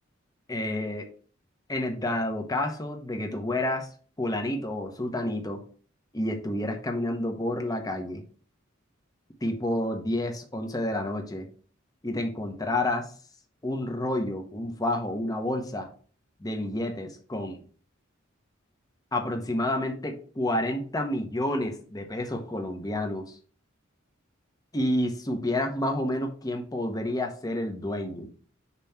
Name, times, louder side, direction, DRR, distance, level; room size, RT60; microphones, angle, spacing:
voice 1, 0.5-1.1 1.7-3.9 4.2-5.6 6.1-8.2 9.4-11.5 12.0-13.1 13.6-15.9 16.4-17.6 19.1-23.4 24.7-28.3, left 1 dB, 20° left, 3 dB, 0.9 m, -29 dB
6.9 x 3.0 x 5.8 m, 0.43 s
head